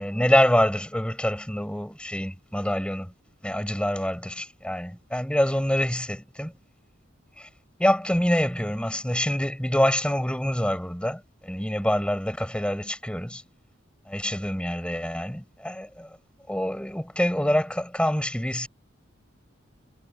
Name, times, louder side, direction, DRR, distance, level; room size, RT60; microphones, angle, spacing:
voice 1, 0.0-3.1 3.4-6.5 7.4-7.5 7.8-13.4 14.1-16.2 16.5-18.7, equal, 5° left, 6.6 m, -26 dB
head